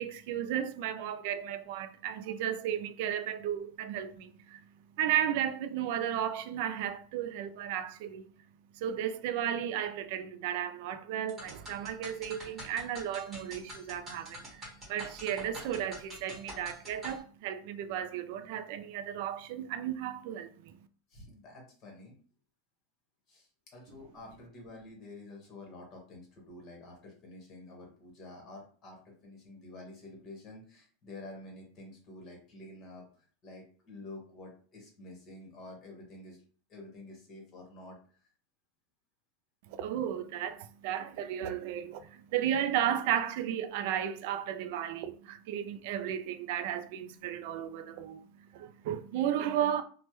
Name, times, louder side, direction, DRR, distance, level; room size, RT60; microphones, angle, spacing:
voice 1, 0.0-4.6 5.0-8.3 8.7-20.8 39.7-49.8, right 10 dB, 55° right, 0.3 m, -34 dB
sound 1, 11.3-17.2, equal, 15° right, 1.5 m, -46 dB
voice 2, 21.1-22.1 23.3-33.0 33.4-36.4 36.7-38.0, left 2 dB, 30° left, 1.2 m, -49 dB
3.2 x 2.1 x 3.0 m
supercardioid pair, 155°, 0 cm